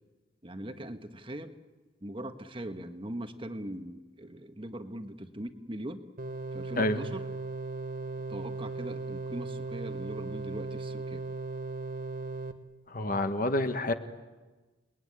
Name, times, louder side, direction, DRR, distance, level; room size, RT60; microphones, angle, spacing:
voice 1, 0.4-1.6 2.0-6.0 6.5-7.2 8.3-11.3, right 1 dB, 25° right, 8 dB, 1.3 m, -40 dB
sound 1, 6.2-12.5, right 3 dB, 45° right, 1.3 m, -37 dB
voice 2, 12.9-13.9, left 1 dB, 45° left, 8 dB, 1.4 m, -28 dB
29.5 x 20.5 x 9.8 m, 1.3 s
head